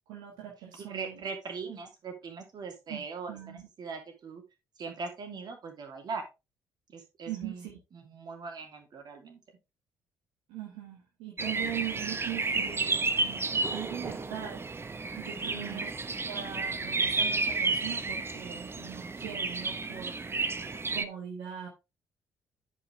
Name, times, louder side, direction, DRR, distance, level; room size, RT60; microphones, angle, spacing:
voice 1, 0.1-1.2 2.9-3.7 7.3-7.8 10.5-15.8 16.3-20.2 20.9-21.7, right 11 dB, 75° right, -1 dB, 1.6 m, -41 dB
voice 2, 0.8-4.4 4.8-6.2 6.9-9.4 15.4-15.9, right 4 dB, 50° right, 4 dB, 2.7 m, -40 dB
sound 1, 11.4-21.0, right 3 dB, 25° right, 0.9 m, -32 dB
9.6 x 5.8 x 3.4 m, 0.26 s
hypercardioid pair, 45°, 9 cm